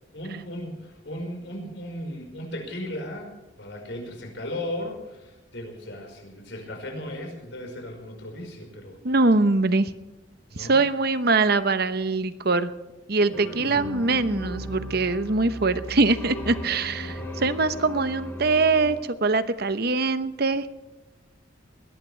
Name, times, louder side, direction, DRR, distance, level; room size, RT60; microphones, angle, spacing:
voice 1, 0.1-9.2 10.5-10.8 13.2-14.1 16.9-17.6, left 1 dB, 65° left, 2 dB, 5.2 m, -37 dB
voice 2, 9.0-9.9 10.6-12.7 13.1-20.6, right 3 dB, 55° right, 12 dB, 1.0 m, -23 dB
sound 1, 13.3-18.9, left 1 dB, 10° left, 6.5 m, -36 dB
21.0 x 18.0 x 3.4 m, 1.1 s
head